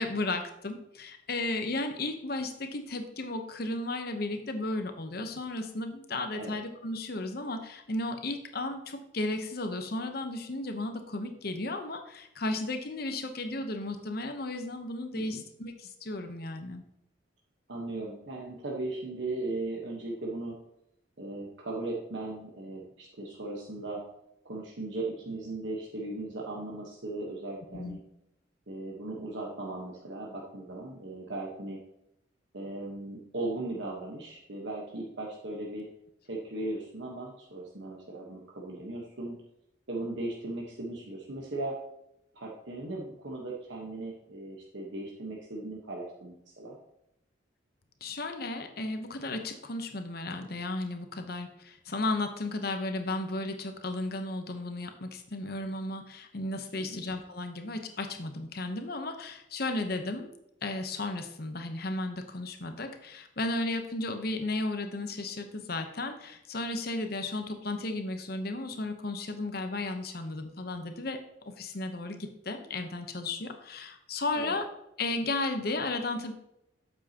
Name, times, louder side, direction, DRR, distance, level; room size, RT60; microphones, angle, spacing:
voice 1, 0.0-16.8 27.7-28.0 48.0-60.3 60.6-74.7 75.0-76.3, left 2 dB, 50° left, 7 dB, 0.9 m, -34 dB
voice 2, 17.7-20.5 21.2-24.0 24.4-28.0 28.7-31.8 32.5-35.9 36.3-39.3 39.9-41.8 42.3-46.8 56.7-57.0 74.4-74.6, right 2 dB, 65° right, -2 dB, 1.2 m, -37 dB
8.7 x 7.3 x 2.9 m, 0.82 s
head